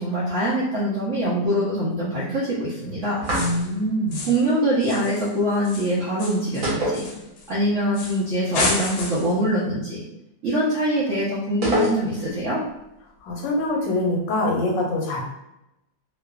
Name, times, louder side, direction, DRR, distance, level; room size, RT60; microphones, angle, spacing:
voice 1, 0.0-3.2 4.3-7.1 7.5-10.0 10.4-12.6, right 1 dB, 75° right, -6 dB, 0.6 m, -23 dB
sound 1, 3.2-3.7 4.1-4.5 4.8-7.5 7.9-8.2 8.5-9.4, left 3 dB, 70° left, 1.0 m, -30 dB
sound 2, 3.2-3.9 6.6-7.7 7.9-8.0 11.6-12.4, left 1 dB, 55° right, 1.1 m, -26 dB
voice 2, 3.3-4.3 13.2-15.2, left 1 dB, 85° left, 0 dB, 1.3 m, -24 dB
2.8 x 2.4 x 2.2 m, 0.87 s
omnidirectional pair, 2.0 m